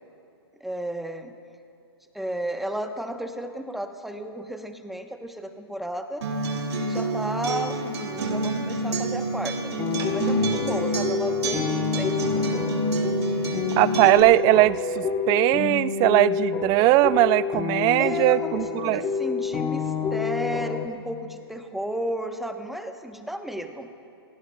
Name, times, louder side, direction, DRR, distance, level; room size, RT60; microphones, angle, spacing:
voice 1, 0.6-1.3 2.1-6.2 6.7-9.7 10.1-12.5 13.6-13.8 18.0-23.9, right 1 dB, ahead, 6 dB, 1.0 m, -33 dB
Acoustic guitar, 6.2-14.2, right 2 dB, 80° right, 2.4 m, -28 dB
sound 1, 9.8-20.9, left 6 dB, 25° left, 1.1 m, -28 dB
voice 2, 13.8-19.1, right 17 dB, 30° right, 17 dB, 0.4 m, -20 dB
28.5 x 17.0 x 2.3 m, 2.6 s
hypercardioid pair, 125°, 14 cm